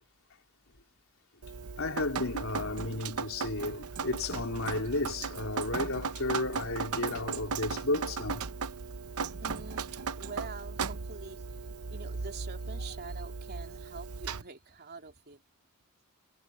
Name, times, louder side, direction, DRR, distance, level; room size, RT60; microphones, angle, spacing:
Drip, 1.4-14.4, right 5 dB, 85° right, 0.8 m, -37 dB
voice 1, 1.8-8.5, left 2 dB, 65° left, 4.2 m, -33 dB
voice 2, 9.4-15.4, right 4 dB, 50° right, 3.3 m, -46 dB
head